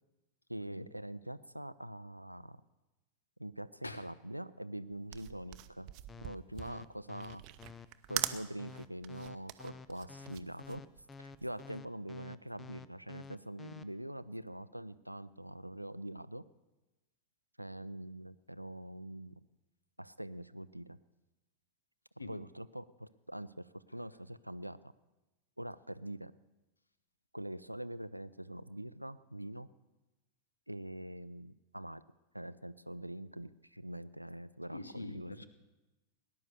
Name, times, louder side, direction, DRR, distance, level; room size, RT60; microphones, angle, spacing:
voice 1, 0.5-2.6 3.4-5.9 6.2-7.4 8.1-10.8 11.2-16.4 17.6-19.4 20.0-21.0 22.3-24.8 25.6-26.3 27.3-29.7 30.7-32.0 32.3-35.4, right 1 dB, 90° right, 16 dB, 0.4 m, -44 dB
sound 1, 4.9-11.6, right 15 dB, 40° right, 0.7 m, -42 dB
sound 2, 6.1-13.8, left 5 dB, 15° left, 0.6 m, -50 dB
voice 2, 34.7-35.4, left 2 dB, 80° left, 12 dB, 1.0 m, -44 dB
19.0 x 10.5 x 6.7 m, 1.1 s
figure-of-eight pair, 90°, 0 cm